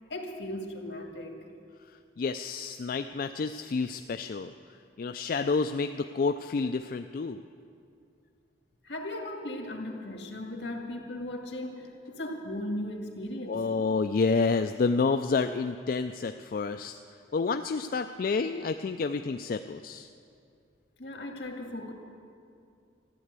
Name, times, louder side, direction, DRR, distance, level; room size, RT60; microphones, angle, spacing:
voice 1, 0.1-1.4 8.8-13.6 21.0-21.9, left 1 dB, 70° left, 2 dB, 2.0 m, -37 dB
voice 2, 2.2-4.5 5.0-7.4 13.5-17.0 17.3-20.1, left 4 dB, 50° left, 8 dB, 0.4 m, -29 dB
14.0 x 11.5 x 8.2 m, 2.4 s
head